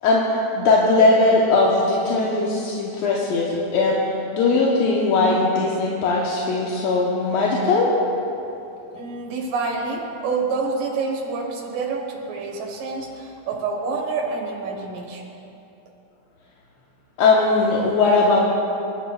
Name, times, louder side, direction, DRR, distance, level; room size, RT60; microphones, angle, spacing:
voice 1, 0.0-7.9 17.2-18.4, left 3 dB, 65° left, -4 dB, 2.0 m, -19 dB
voice 2, 8.9-15.2, right 4 dB, 85° right, 0 dB, 3.1 m, -27 dB
26.5 x 11.5 x 2.4 m, 2.9 s
omnidirectional pair, 3.8 m